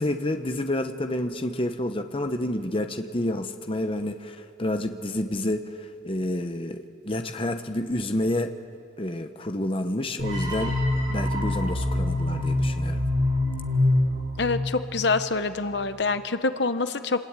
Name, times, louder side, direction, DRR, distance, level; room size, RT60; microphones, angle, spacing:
voice 1, 0.0-8.5 9.0-10.8 11.1-13.0, left 1 dB, 30° left, 7 dB, 0.9 m, -29 dB
sound 1, 10.2-15.3, left 1 dB, 85° right, 7.5 m, -25 dB
voice 2, 14.4-17.2, left 3 dB, 60° left, 10 dB, 0.9 m, -26 dB
25.5 x 21.0 x 9.0 m, 2.6 s
head